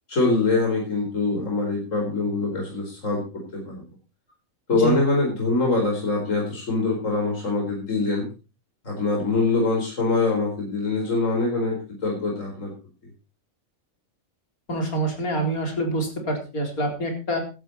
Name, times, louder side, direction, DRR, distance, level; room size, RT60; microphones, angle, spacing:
voice 1, 0.1-3.2 3.5-3.8 4.7-8.3 8.8-11.8 12.0-12.7, left 3 dB, 60° left, -1 dB, 4.9 m, -24 dB
voice 2, 14.7-17.4, right 2 dB, 90° left, 3 dB, 4.6 m, -26 dB
16.0 x 12.5 x 4.2 m, 0.32 s
omnidirectional pair, 1.5 m